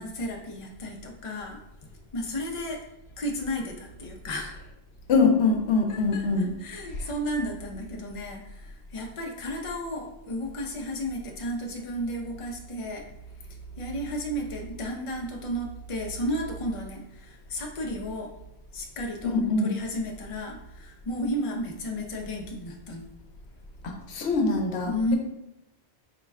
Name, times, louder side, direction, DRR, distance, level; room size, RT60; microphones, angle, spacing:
voice 1, 0.0-1.6 2.1-2.8 3.2-4.6 5.9-13.0 13.8-18.3 18.7-23.1 24.9-25.2, equal, 40° left, 1 dB, 0.5 m, -33 dB
voice 2, 5.1-6.6 7.0-7.1 19.2-19.8 23.8-25.2, left 3 dB, 80° left, 3 dB, 0.9 m, -24 dB
4.8 x 2.1 x 3.5 m, 0.87 s
omnidirectional pair, 1.1 m